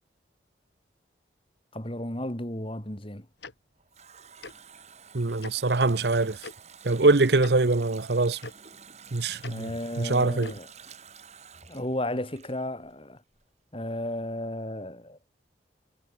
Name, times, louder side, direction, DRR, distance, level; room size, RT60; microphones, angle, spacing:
voice 1, 1.7-3.3 9.5-10.7 11.7-13.2 13.7-15.2, left 1 dB, 30° left, 3.6 m, -33 dB
Tick-tock, 3.4-3.5 4.4-4.5 5.4-5.5 6.4-6.5 7.4-7.5 8.4-8.5 9.4-9.5 10.4-10.6, left 4 dB, 70° left, 1.6 m, -41 dB
Water tap faucet, 3.4-13.1 13.3-13.4, right 7 dB, 35° right, 3.2 m, -50 dB
voice 2, 5.1-6.4 6.8-8.4 9.1-9.7 10.0-10.5, right 3 dB, 65° right, 0.9 m, -23 dB
head